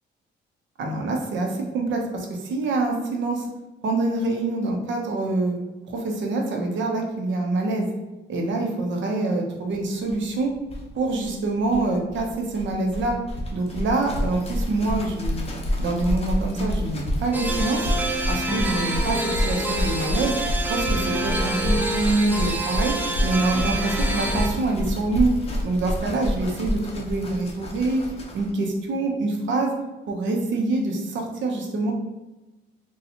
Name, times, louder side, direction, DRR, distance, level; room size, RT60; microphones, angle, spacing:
voice 1, 0.8-3.5 3.8-5.6 5.9-7.9 8.3-10.5 10.9-13.2 13.5-15.5 15.8-17.9 18.3-20.4 20.7-23.0 23.2-25.3 25.6-28.0 28.3-29.7 30.1-31.9, right 2 dB, 70° right, 1 dB, 0.7 m, -25 dB
sound 1, 10.1-10.2 10.4-10.5 10.6-28.5, equal, 30° left, 0.7 m, -28 dB
sound 2, 17.3-24.5, right 1 dB, 10° right, 0.4 m, -27 dB
4.1 x 2.3 x 2.8 m, 1.1 s
cardioid pair, 90°, 20 cm